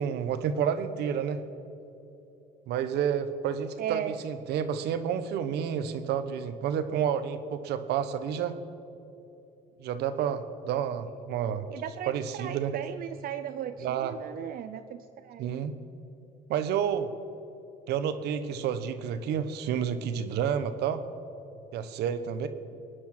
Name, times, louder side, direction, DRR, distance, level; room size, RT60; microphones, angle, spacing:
voice 1, 0.0-1.4 2.7-8.6 9.8-11.7 12.1-12.7 13.8-14.2 15.4-15.8 16.5-17.1 17.9-21.0 21.7-22.5, right 8 dB, 80° right, 10 dB, 1.1 m, -30 dB
voice 2, 3.8-4.2 11.7-15.7, right 10 dB, 60° right, 9 dB, 0.6 m, -36 dB
22.0 x 9.7 x 6.0 m, 2.9 s
cardioid pair, 110°, 17 cm